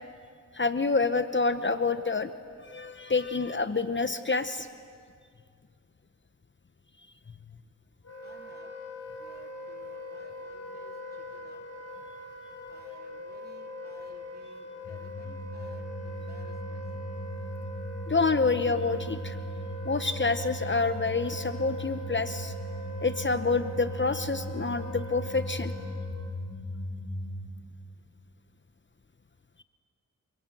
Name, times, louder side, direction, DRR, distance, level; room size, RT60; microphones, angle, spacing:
voice 1, 0.5-2.3 2.6-4.7 18.1-19.4 19.8-22.5 23.0-25.7, left 4 dB, 35° left, 11 dB, 0.9 m, -27 dB
Wind instrument woodwind instrument, 8.0-26.2, equal, 55° left, 7.5 m, -42 dB
voice 2, 8.2-8.7 9.2-11.6 12.7-17.1, right 1 dB, 30° right, 3 dB, 3.3 m, -57 dB
sound 1, 14.8-27.5, equal, 70° left, 4.0 m, -38 dB
27.0 x 23.0 x 9.1 m, 2.1 s
wide cardioid pair, 80°, 32 cm